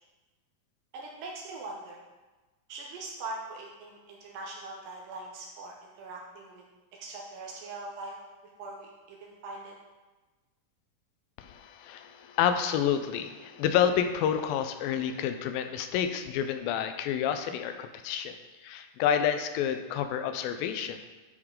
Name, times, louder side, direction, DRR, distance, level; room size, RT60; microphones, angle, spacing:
voice 1, 0.9-2.0 2.7-6.6 7.0-8.2 8.6-9.7, right 2 dB, 80° right, -1 dB, 2.4 m, -41 dB
voice 2, 11.4-18.4 18.6-21.0, left 9 dB, 85° left, 8 dB, 2.3 m, -29 dB
9.8 x 4.7 x 3.7 m, 1.2 s
omnidirectional pair, 4.1 m